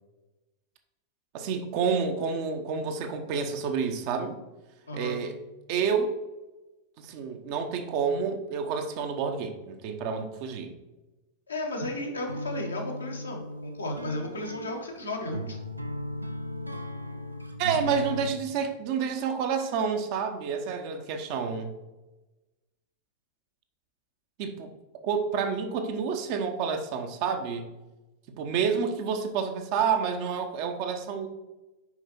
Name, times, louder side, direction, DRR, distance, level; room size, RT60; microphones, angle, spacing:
voice 1, 1.3-4.4 4.9-5.3 5.7-6.1 7.0-10.7 17.6-21.7 24.4-24.7 25.0-27.7 28.4-31.3, right 6 dB, 45° right, 5 dB, 0.8 m, -29 dB
voice 2, 4.9-5.2 11.5-15.6, left 1 dB, 75° left, 1 dB, 1.3 m, -34 dB
sound 1, 12.3-18.4, equal, 85° right, 0.5 m, -36 dB
5.9 x 5.0 x 4.4 m, 1.1 s
figure-of-eight pair, 90°, 0 cm